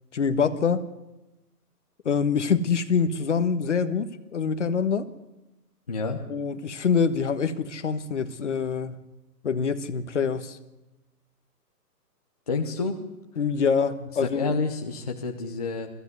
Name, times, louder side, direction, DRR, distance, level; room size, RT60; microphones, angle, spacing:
voice 1, 0.1-0.9 2.0-5.1 6.3-9.0 9.4-10.6 13.4-14.5, left 6 dB, 45° left, 11 dB, 1.4 m, -25 dB
voice 2, 5.9-6.2 12.5-13.0 14.2-15.9, left 4 dB, 25° left, 2 dB, 0.9 m, -29 dB
23.0 x 15.0 x 9.5 m, 1.0 s
hypercardioid pair, 180°, 49 cm